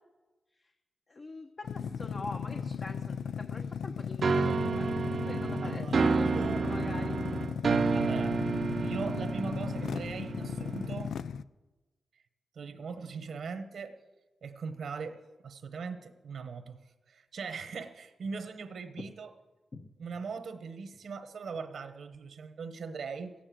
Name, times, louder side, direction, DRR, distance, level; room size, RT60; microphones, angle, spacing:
voice 1, 1.1-5.0 5.2-7.1 7.4-7.5 19.7-19.9, left 2 dB, 45° left, 4 dB, 1.1 m, -44 dB
sound 1, 1.6-11.4, left 7 dB, 85° left, 0.4 m, -36 dB
sound 2, 4.2-11.1, right 4 dB, 60° right, 0.7 m, -30 dB
voice 2, 5.6-6.6 7.9-11.1 12.5-13.9 14.4-16.8 17.1-19.3 20.0-23.3, right 5 dB, 75° right, 9 dB, 1.1 m, -40 dB
16.0 x 8.8 x 7.6 m, 1.2 s
cardioid pair, 80°, 0 cm